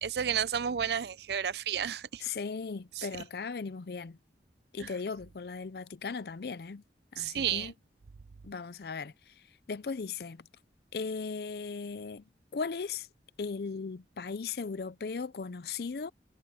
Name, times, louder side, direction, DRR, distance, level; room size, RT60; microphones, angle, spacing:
voice 1, 0.0-2.2 3.0-3.1 7.2-7.7, right 8 dB, 70° right, 0.5 m, -31 dB
voice 2, 2.2-4.2 4.7-6.8 7.1-7.7 8.4-10.5 10.9-13.1 13.4-16.1, left 5 dB, 60° left, 0.5 m, -37 dB
head